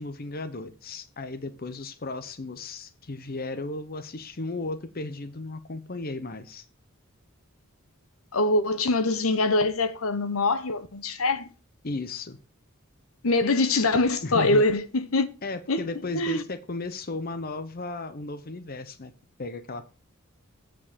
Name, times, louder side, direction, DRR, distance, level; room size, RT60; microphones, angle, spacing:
voice 1, 0.0-6.6 11.8-12.4 14.2-14.6 15.4-19.1 19.4-19.9, left 2 dB, 45° left, 0.8 m, -35 dB
voice 2, 8.3-11.5 13.2-15.3 15.7-15.8 16.1-16.4, left 2 dB, 80° left, 1.0 m, -23 dB
8.6 x 4.8 x 7.4 m
head